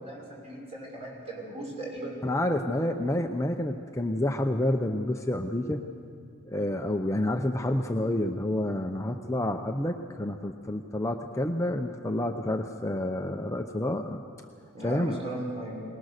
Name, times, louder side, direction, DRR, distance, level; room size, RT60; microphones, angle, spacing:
voice 1, 0.0-2.2 14.7-15.8, right 1 dB, 30° right, -3 dB, 5.8 m, -37 dB
voice 2, 2.2-5.8 6.5-14.2 14.8-15.2, left 1 dB, 15° left, 4 dB, 0.7 m, -29 dB
22.5 x 19.5 x 6.7 m, 2.3 s
head